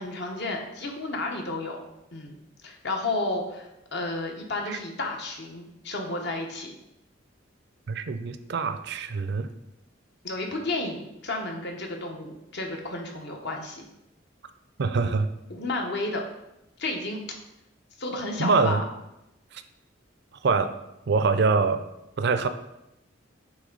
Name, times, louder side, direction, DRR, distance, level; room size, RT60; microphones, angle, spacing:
voice 1, 0.0-1.8 2.1-2.4 2.6-6.7 10.2-13.8 15.5-16.2 16.8-17.2 18.0-18.8, left 2 dB, 60° left, 2 dB, 1.0 m, -32 dB
voice 2, 7.9-9.5 14.8-15.3 18.4-18.8 19.5-19.6 20.4-20.7 21.1-21.8 22.2-22.5, right 4 dB, 60° right, 10 dB, 0.4 m, -24 dB
8.4 x 3.4 x 3.8 m, 0.88 s
head